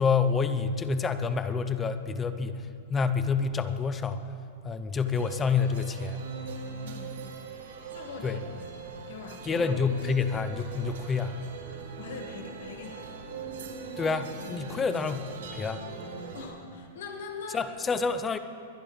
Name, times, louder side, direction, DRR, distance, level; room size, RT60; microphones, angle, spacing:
voice 1, 0.0-4.2 4.6-6.2 8.2-8.4 9.4-11.3 14.0-15.8 17.5-18.4, left 5 dB, 10° left, 11 dB, 0.5 m, -28 dB
sound 1, 5.1-16.5, right 5 dB, 85° right, 1.9 m, -41 dB
voice 2, 6.8-7.2 7.9-8.4 8.7-9.7 12.0-13.6 16.2-17.7, left 4 dB, 70° left, 2 dB, 1.8 m, -42 dB
21.5 x 10.5 x 3.4 m, 2.5 s
supercardioid pair, 165°, 0 cm